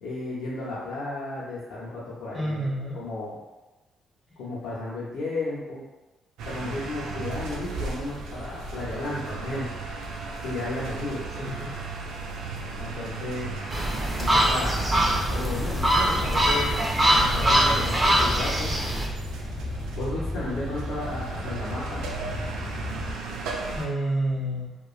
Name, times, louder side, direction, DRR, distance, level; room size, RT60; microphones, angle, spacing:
voice 1, 0.0-2.7 2.9-3.3 4.4-5.8 6.4-9.9 10.4-11.2 12.8-13.5 14.2-14.8 15.3-16.8 17.2-18.7 19.9-22.0, left 2 dB, 80° left, -8 dB, 0.6 m, -33 dB
voice 2, 2.3-3.0 11.4-11.7 23.7-24.8, right 1 dB, 5° right, -6 dB, 1.2 m, -29 dB
sound 1, 6.4-23.9, right 3 dB, 85° right, 0.3 m, -36 dB
sound 2, 13.7-19.1, right 1 dB, 30° right, 0.5 m, -23 dB
sound 3, 14.7-23.1, left 1 dB, 35° left, 0.7 m, -35 dB
2.9 x 2.3 x 2.3 m, 1.1 s
cardioid pair, 90°, 0 cm